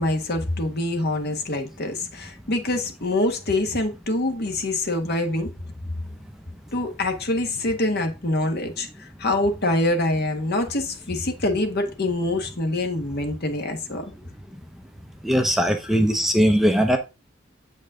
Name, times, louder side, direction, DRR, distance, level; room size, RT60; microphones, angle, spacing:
voice 1, 0.0-5.5 6.7-14.0, left 2 dB, 55° left, 1.5 m, -25 dB
voice 2, 15.2-17.0, equal, ahead, 0.7 m, -19 dB
8.0 x 5.2 x 3.7 m
head